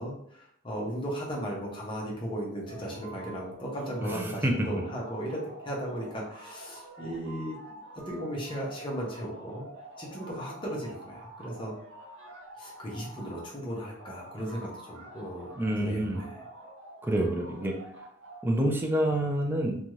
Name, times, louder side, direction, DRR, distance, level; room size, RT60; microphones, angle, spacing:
voice 1, 0.0-7.6 8.1-9.7 10.0-11.7 12.6-15.5 15.8-16.4, equal, 25° left, -3 dB, 0.7 m, -36 dB
sound 1, 2.7-4.3 4.6-13.5 14.0-15.7 16.1-18.4, right 1 dB, 60° right, 0.6 m, -47 dB
voice 2, 4.0-4.7 15.6-16.2 17.0-17.7 18.4-19.8, right 1 dB, 10° right, 1 dB, 0.3 m, -27 dB
2.6 x 2.3 x 3.0 m, 0.70 s
head